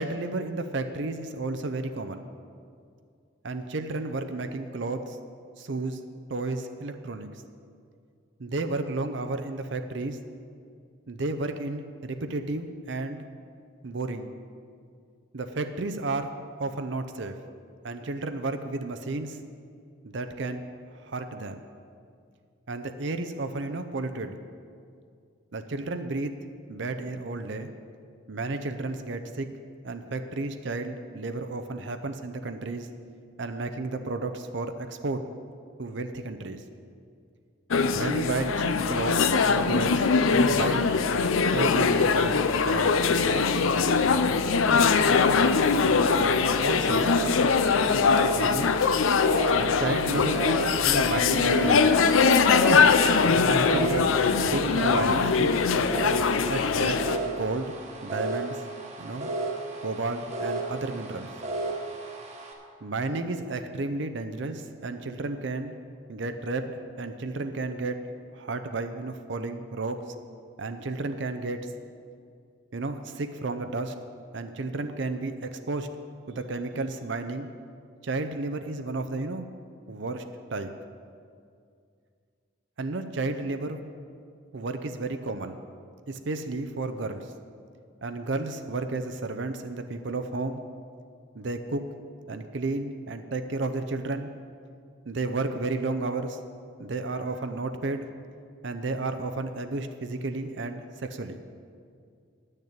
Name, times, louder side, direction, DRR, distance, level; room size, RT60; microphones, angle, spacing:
voice 1, 0.0-2.3 3.4-5.2 5.6-6.0 6.3-7.3 8.4-10.2 11.1-13.2 13.8-14.3 15.3-16.3 16.6-17.4 17.8-19.4 20.0-20.6 21.0-21.6 22.7-24.4 25.5-26.3 26.7-27.7 28.3-29.5 29.8-32.9 33.4-35.2 35.8-36.6 37.9-40.8 41.4-43.4 46.4-47.1 48.4-48.7 49.6-50.4 50.9-52.1 53.5-55.5 56.5-57.0 57.3-57.7 58.0-58.6 59.0-59.3 59.8-61.3 62.8-65.7 66.1-66.7 67.0-68.0 68.3-70.0 70.6-71.7 72.7-73.9 74.3-75.9 76.3-77.5 78.0-79.5 79.9-80.2 80.5-80.7 82.8-83.8 84.5-85.6 86.1-87.3 88.0-90.6 91.4-91.8 92.3-94.3 95.1-96.4 96.8-98.1 98.6-101.4, right 3 dB, 60° right, 8 dB, 0.6 m, -32 dB
sound 1, 37.7-57.2, left 5 dB, 75° left, 0.5 m, -22 dB
sound 2, 46.5-62.5, right 2 dB, 35° right, 1.2 m, -34 dB
10.5 x 6.6 x 8.6 m, 2.3 s
head